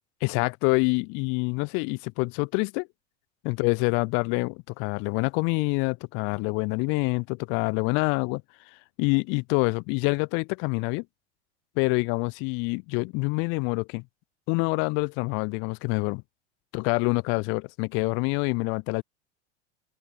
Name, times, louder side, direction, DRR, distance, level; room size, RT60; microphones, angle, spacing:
voice 1, 0.2-2.9 3.4-8.4 9.0-11.0 11.8-14.0 14.5-16.2 16.7-19.0, left 32 dB, 40° left, 0.4 m, -26 dB
open air
figure-of-eight pair, 85°, 34 cm